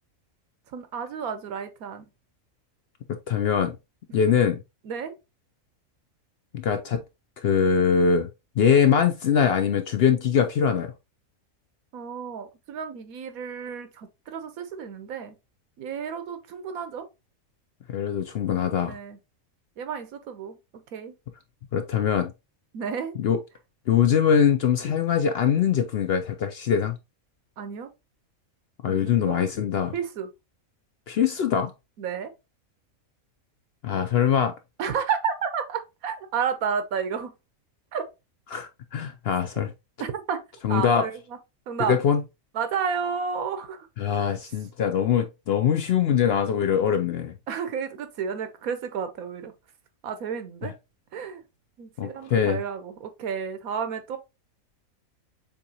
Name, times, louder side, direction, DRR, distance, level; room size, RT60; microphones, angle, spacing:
voice 1, 0.7-2.1 4.1-4.4 4.8-5.1 11.9-15.4 15.8-17.0 18.9-19.2 19.8-21.1 22.7-23.2 27.6-27.9 28.9-29.4 29.9-30.3 32.0-32.3 34.8-37.3 37.9-38.0 40.0-40.4 40.7-41.4 41.7-42.0 42.5-43.9 47.5-49.5 50.0-50.7 51.1-51.4 51.8-54.2, right 7 dB, 85° right, 1.3 m, -31 dB
voice 2, 3.3-3.8 4.1-4.6 6.5-7.0 7.4-8.3 8.6-10.9 17.9-19.0 21.7-22.3 23.2-23.4 23.9-27.0 28.8-29.9 31.1-31.7 33.8-34.5 38.5-39.7 40.6-41.1 41.9-42.2 44.0-47.3 50.6-50.7 52.0-52.6, left 7 dB, 65° left, 0.6 m, -22 dB
6.9 x 2.8 x 2.8 m
omnidirectional pair, 1.4 m